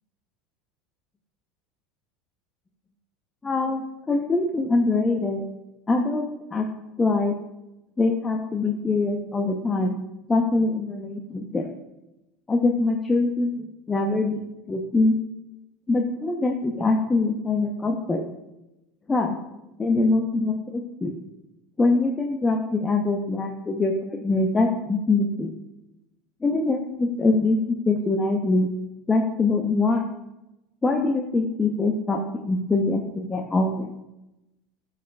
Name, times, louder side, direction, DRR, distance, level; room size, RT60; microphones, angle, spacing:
voice 1, 3.4-5.4 5.9-6.7 7.0-7.3 8.0-10.0 10.3-11.7 12.5-14.4 14.7-15.1 15.9-18.2 19.1-19.4 19.8-21.1 21.8-25.6 26.4-28.7 29.1-30.0 30.8-33.9, left 3 dB, 20° left, 2 dB, 0.7 m, -23 dB
12.5 x 4.8 x 2.3 m, 0.95 s
hypercardioid pair, 90°, 0 cm